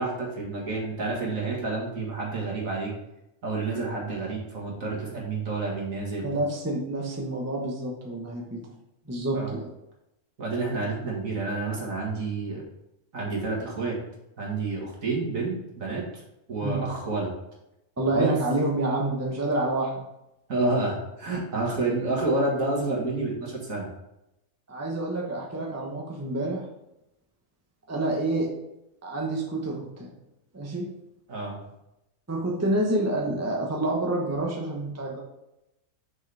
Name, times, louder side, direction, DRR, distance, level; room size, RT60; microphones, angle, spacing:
voice 1, 0.0-2.9 3.4-6.3 9.3-9.5 10.4-12.6 13.1-14.0 14.4-16.2 16.5-17.3 18.1-18.3 20.5-23.9 31.3-31.5, right 3 dB, 60° right, -3 dB, 2.3 m, -29 dB
voice 2, 6.2-8.6 9.1-9.7 16.6-16.8 18.0-20.0 24.7-26.6 27.9-28.5 29.0-30.1 30.5-30.9 32.3-35.2, right 2 dB, 10° right, -1 dB, 1.0 m, -28 dB
6.5 x 6.2 x 3.5 m, 0.88 s
omnidirectional pair, 1.6 m